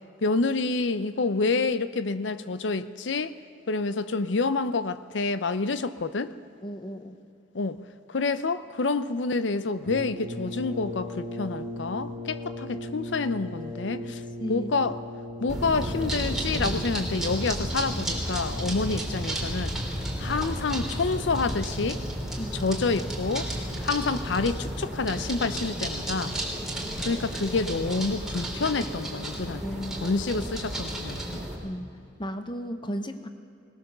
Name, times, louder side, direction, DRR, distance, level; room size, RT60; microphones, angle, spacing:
voice 1, 0.2-3.3 3.7-6.3 7.5-7.8 8.1-14.2 14.5-15.0 15.4-19.7 20.2-22.0 22.5-23.5 23.8-26.3 27.1-31.4, left 3 dB, 80° left, 13 dB, 0.7 m, -28 dB
voice 2, 6.6-7.1 14.4-14.7 22.4-22.5 26.7-27.2 29.6-30.1 31.6-31.8 32.2-33.3, equal, 25° left, 8 dB, 0.9 m, -35 dB
Brass instrument, 9.8-17.0, left 1 dB, 30° right, 2.9 m, -37 dB
sound 1, 15.5-31.6, right 1 dB, 5° right, 3.3 m, -32 dB
21.0 x 19.0 x 6.8 m, 2.7 s
head